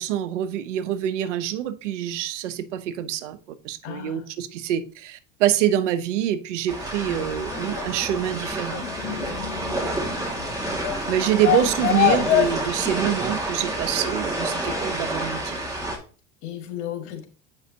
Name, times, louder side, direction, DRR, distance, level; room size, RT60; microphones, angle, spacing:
voice 1, 0.0-3.4 3.6-9.4 11.1-15.6, right 11 dB, 90° right, 0.9 m, -26 dB
voice 2, 3.8-4.3 9.3-9.7 10.2-10.5 16.4-17.3, left 11 dB, 65° left, 2.2 m, -36 dB
sound 1, 6.7-16.0, right 1 dB, 10° right, 2.0 m, -29 dB
sound 2, 7.1-12.7, left 13 dB, 85° left, 1.2 m, -26 dB
8.0 x 5.4 x 2.8 m
supercardioid pair, 110°, 36 cm